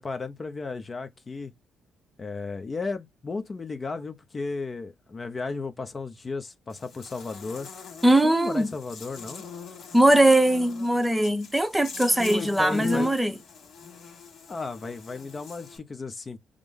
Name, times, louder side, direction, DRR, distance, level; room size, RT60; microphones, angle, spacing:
voice 1, 0.0-1.5 2.2-7.7 8.2-9.4 12.2-13.1 14.5-16.4, left 4 dB, 30° left, 0.6 m, -34 dB
Buzz, 6.7-15.8, left 5 dB, 65° left, 1.5 m, -41 dB
voice 2, 8.0-8.7 9.9-13.4, right 1 dB, 10° right, 0.7 m, -20 dB
5.0 x 2.0 x 3.5 m
cardioid pair, 90°, 0 cm